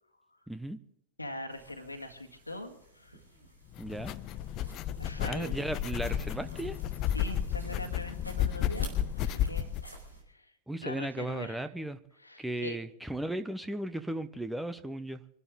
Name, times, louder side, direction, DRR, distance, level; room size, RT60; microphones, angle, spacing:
voice 1, 0.5-0.8 3.8-4.2 5.3-6.8 10.7-12.0 12.4-15.2, right 1 dB, 5° right, 10 dB, 0.9 m, -36 dB
voice 2, 1.2-3.2 5.0-5.6 7.1-10.0 10.3-10.5 10.8-11.7 12.2-12.8, left 1 dB, 85° left, 3 dB, 2.0 m, -42 dB
sound 1, 1.5-10.2, equal, 85° right, 4.1 m, -52 dB
sound 2, 3.7-9.8, left 10 dB, 35° left, 0.5 m, -32 dB
26.0 x 12.0 x 3.7 m, 0.76 s
figure-of-eight pair, 90°, 0 cm